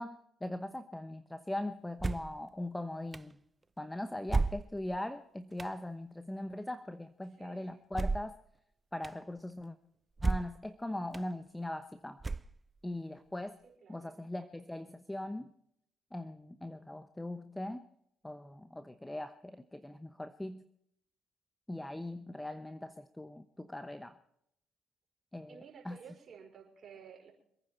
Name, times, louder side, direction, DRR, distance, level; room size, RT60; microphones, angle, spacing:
voice 1, 0.0-3.4 3.8-8.4 8.9-9.8 10.2-12.2 12.8-13.6 13.9-15.5 16.1-17.9 18.2-20.6 21.7-24.2 25.3-26.0, left 1 dB, 10° left, 11 dB, 1.0 m, -40 dB
sound 1, 2.0-2.4 3.1-3.2 4.3-5.0 5.6-5.7 7.9-8.4 9.0-9.1 10.2-10.7 11.1-11.2 12.2-12.8, right 3 dB, 25° right, 0.5 m, -33 dB
voice 2, 7.4-7.8 13.6-14.2 25.5-27.3, right 7 dB, 50° right, 1 dB, 5.4 m, -53 dB
26.0 x 9.7 x 4.5 m, 0.76 s
hypercardioid pair, 55°, 0 cm